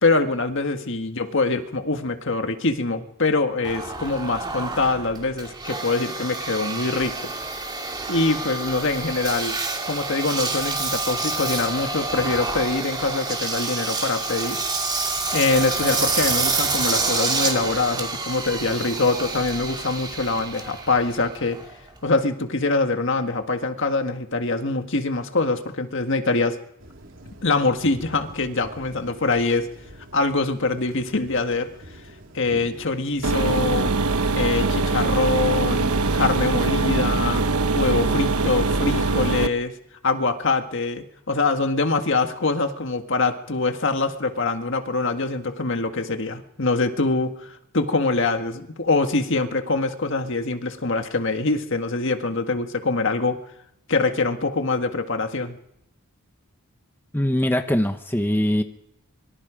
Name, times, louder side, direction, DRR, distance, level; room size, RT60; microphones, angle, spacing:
voice 1, 0.0-7.3 8.1-9.6 9.8-14.9 15.3-21.6 22.0-26.6 27.4-29.7 30.1-31.7 32.3-33.9 34.3-37.4 37.7-39.7 40.0-53.4 53.9-55.6, left 3 dB, 55° left, 6 dB, 1.7 m, -24 dB
Engine, 3.6-22.1, right 3 dB, 20° right, 2.9 m, -28 dB
sound 1, 26.8-34.2, right 1 dB, 60° right, 3.7 m, -45 dB
sound 2, 33.2-39.5, right 3 dB, 85° right, 1.0 m, -22 dB
voice 2, 57.1-58.6, left 1 dB, 10° left, 7 dB, 0.9 m, -22 dB
25.5 x 23.5 x 5.1 m, 0.77 s
head